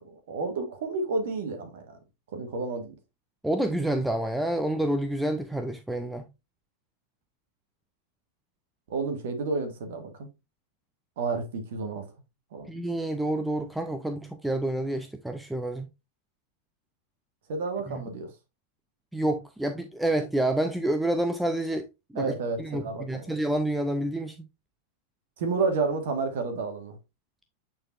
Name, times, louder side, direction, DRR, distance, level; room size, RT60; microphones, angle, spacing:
voice 1, 0.0-1.8 2.3-2.9 8.9-10.3 11.2-12.0 12.5-12.7 17.5-18.3 22.1-23.3 25.4-26.9, right 4 dB, 55° right, 1.6 m, -30 dB
voice 2, 3.4-6.3 12.7-15.9 17.9-18.0 19.1-21.9 22.1-22.3 22.6-24.4, right 1 dB, 5° right, 0.6 m, -28 dB
8.6 x 4.4 x 2.6 m
figure-of-eight pair, 90°, 0 cm